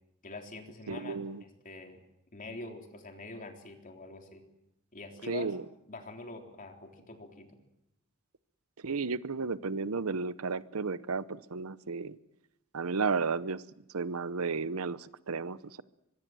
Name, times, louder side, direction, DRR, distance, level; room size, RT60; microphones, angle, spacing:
voice 1, 0.2-2.0 2.3-4.4 4.9-5.5 5.9-7.5, left 2 dB, 40° left, 3 dB, 3.7 m, -45 dB
voice 2, 0.9-1.4 5.3-5.6 8.8-12.2 12.7-13.6 13.9-15.8, right 4 dB, 80° right, 16 dB, 0.8 m, -33 dB
24.0 x 23.0 x 7.7 m, 0.85 s
head